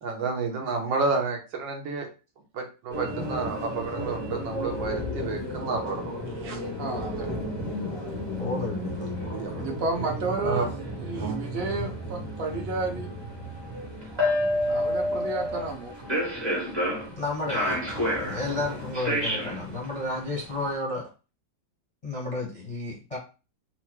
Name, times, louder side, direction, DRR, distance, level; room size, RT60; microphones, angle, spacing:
voice 1, 0.0-2.1 2.5-6.6 9.2-9.5 10.4-10.6 11.1-11.4, right 4 dB, 80° right, 2 dB, 1.7 m, -30 dB
sound 1, 2.9-20.7, equal, 20° right, 0.8 m, -31 dB
sound 2, 3.6-8.4, left 10 dB, 85° left, 1.3 m, -39 dB
voice 2, 6.8-7.3 9.6-10.7 11.0-13.1 14.7-16.2, right 3 dB, 40° right, 1 dB, 1.0 m, -31 dB
voice 3, 8.4-9.8 16.7-16.8 17.1-17.8 18.2-21.1 22.0-23.2, left 2 dB, 30° left, -2 dB, 0.6 m, -32 dB
4.5 x 2.1 x 4.5 m, 0.32 s
omnidirectional pair, 2.0 m